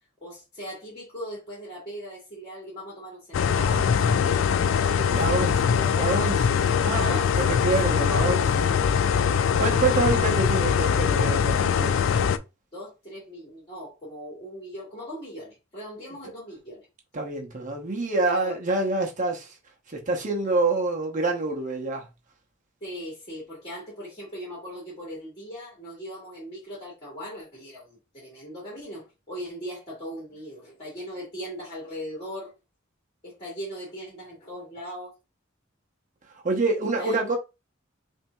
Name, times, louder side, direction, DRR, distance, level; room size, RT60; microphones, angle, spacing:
voice 1, 0.2-6.3 6.9-9.5 10.0-10.3 12.7-16.9 18.2-18.5 22.8-32.5 33.2-35.1 37.0-37.2, equal, 25° left, 1.8 m, -39 dB
sound 1, 3.3-12.4, left 7 dB, 80° left, 0.4 m, -22 dB
voice 2, 5.1-8.8 9.6-12.0 17.1-19.5 19.9-22.1 36.4-37.4, right 3 dB, 40° right, 0.9 m, -27 dB
5.8 x 2.7 x 2.3 m
head